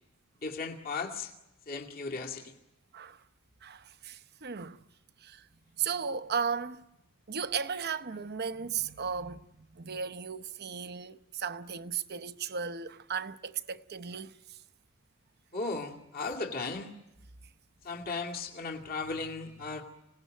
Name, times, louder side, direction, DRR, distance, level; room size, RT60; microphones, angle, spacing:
voice 1, 0.4-1.3 1.7-2.5 15.5-16.9 17.8-19.8, left 4 dB, 45° left, 2.2 m, -36 dB
voice 2, 3.6-4.8 5.2-5.5 5.8-6.8 7.3-14.6, right 6 dB, 50° right, 0.9 m, -36 dB
26.5 x 18.0 x 9.1 m
head